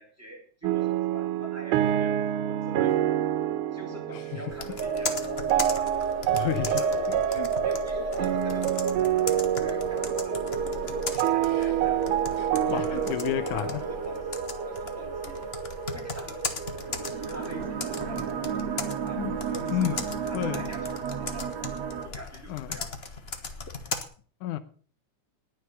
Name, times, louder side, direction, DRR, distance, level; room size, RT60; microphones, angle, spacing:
voice 1, 0.0-3.3 3.7-5.5 6.8-7.1 7.6-10.4 11.1-12.2 12.5-14.3 14.7-15.4 15.9-16.6 17.0-18.4 19.0-20.0 20.3-21.5 22.0-23.0, equal, 5° right, 4.2 m, -44 dB
sound 1, 0.6-14.6, right 11 dB, 90° right, 2.3 m, -28 dB
voice 2, 4.1-4.4 6.3-6.8 7.4-7.6 11.4-11.7 12.4-13.8 19.1-19.4 19.7-20.7 22.5-22.8 24.4-24.6, left 12 dB, 85° left, 2.3 m, -31 dB
Computer keyboard, 4.5-24.0, left 3 dB, 60° left, 0.6 m, -38 dB
sound 2, 4.8-22.1, right 5 dB, 65° right, 2.3 m, -33 dB
19.5 x 6.7 x 6.7 m
omnidirectional pair, 3.5 m